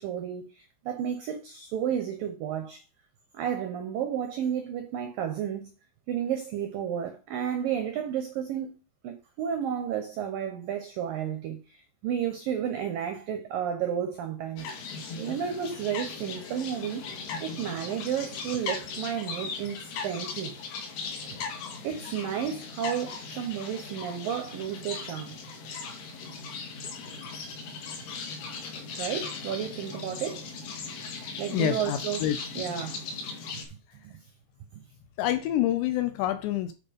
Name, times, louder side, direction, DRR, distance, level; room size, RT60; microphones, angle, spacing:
voice 1, 0.0-2.8 3.3-5.7 6.1-8.7 9.0-17.1 17.4-20.5 21.3-21.4 21.8-25.4 29.0-30.5 31.4-32.3 32.6-33.0 33.5-33.8 34.0-34.2 34.7-34.8, right 9 dB, 85° right, 2.0 m, -32 dB
sound 1, 14.6-33.7, left 4 dB, 65° left, 3.7 m, -38 dB
voice 2, 31.5-32.7 35.2-36.7, left 12 dB, 80° left, 2.6 m, -27 dB
9.7 x 4.6 x 5.2 m
omnidirectional pair, 5.5 m